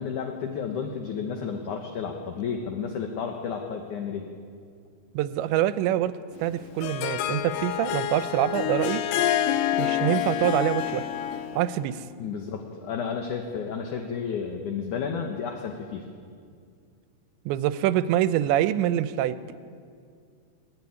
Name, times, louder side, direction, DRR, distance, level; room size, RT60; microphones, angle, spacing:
voice 1, 0.0-4.3 12.2-16.0, left 6 dB, 60° left, 3 dB, 2.2 m, -32 dB
voice 2, 5.1-6.1 6.4-9.0 9.8-11.1 11.6-12.1 17.5-19.4, right 12 dB, 90° right, 13 dB, 3.0 m, -25 dB
Harp, 6.4-11.7, left 11 dB, 80° left, 2.9 m, -27 dB
22.0 x 19.5 x 9.6 m, 2.2 s
omnidirectional pair, 5.1 m